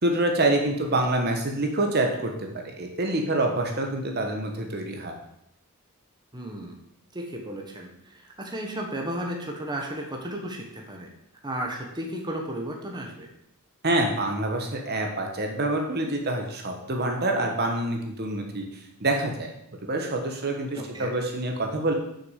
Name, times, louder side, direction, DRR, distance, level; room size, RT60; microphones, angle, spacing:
voice 1, 0.0-2.5 2.8-5.1 13.8-18.6 19.0-19.5 19.8-21.9, right 2 dB, 45° right, 2 dB, 1.3 m, -26 dB
voice 2, 6.3-6.8 7.1-11.1 11.4-13.3 20.7-21.1, right 1 dB, 20° right, 1 dB, 1.4 m, -34 dB
7.1 x 6.3 x 7.5 m, 0.77 s
head